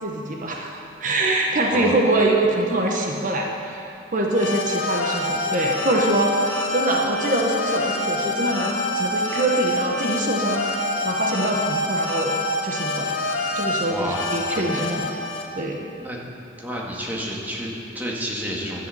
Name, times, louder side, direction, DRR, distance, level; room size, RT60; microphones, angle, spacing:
voice 1, 0.0-3.9 4.1-10.7 11.0-12.4 12.6-13.3 13.5-15.1 15.5-15.8, right 1 dB, 45° right, 0 dB, 1.1 m, -24 dB
voice 2, 1.7-2.0 13.9-14.9 16.0-16.2 16.6-18.9, equal, 10° right, -3 dB, 1.9 m, -30 dB
sound 1, 4.3-15.4, left 2 dB, 80° left, 1.7 m, -26 dB
13.0 x 8.1 x 7.8 m, 2.7 s
head